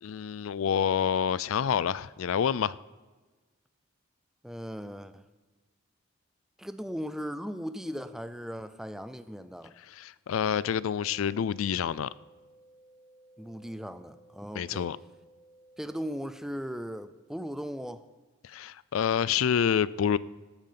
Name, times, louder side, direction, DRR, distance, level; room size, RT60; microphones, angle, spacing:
voice 1, 0.0-2.8 9.9-12.1 14.5-15.0 18.4-20.2, left 8 dB, 85° left, 0.4 m, -28 dB
voice 2, 4.4-5.2 6.6-9.8 13.4-14.9 15.8-18.0, equal, ahead, 0.4 m, -38 dB
sound 1, 10.4-16.4, right 1 dB, 25° left, 3.8 m, -58 dB
13.0 x 8.9 x 5.7 m
head